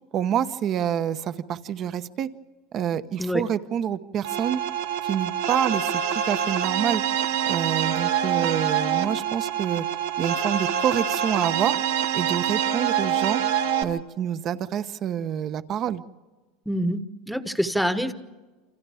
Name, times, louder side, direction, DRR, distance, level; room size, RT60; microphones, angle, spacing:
voice 1, 0.1-2.3 2.7-4.6 5.0-5.8 6.3-7.0 7.5-9.9 10.2-11.8 12.1-13.4 13.8-16.0, right 9 dB, 40° right, 12 dB, 0.9 m, -27 dB
sound 1, 4.2-13.8, right 9 dB, 85° right, 1.4 m, -25 dB
voice 2, 16.7-18.1, equal, ahead, 10 dB, 1.1 m, -26 dB
29.0 x 26.0 x 3.5 m, 1.3 s
supercardioid pair, 135°, 0 cm